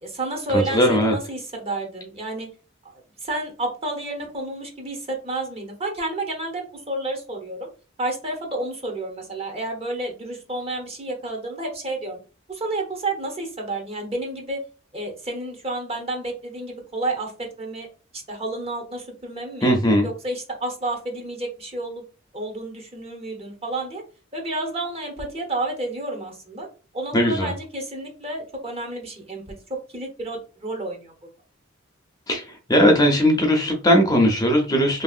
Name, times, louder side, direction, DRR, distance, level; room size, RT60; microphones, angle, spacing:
voice 1, 0.0-2.5 3.2-7.7 8.0-12.2 12.5-14.6 14.9-17.9 18.1-19.7 20.0-22.0 22.3-24.0 24.3-26.7 26.9-29.4 29.7-31.1, right 2 dB, 30° right, 2 dB, 0.8 m, -30 dB
voice 2, 0.5-1.1 19.6-20.1 27.1-27.5 32.3-32.4 32.7-35.0, equal, 20° left, 2 dB, 0.5 m, -18 dB
2.9 x 2.7 x 2.4 m, 0.35 s
head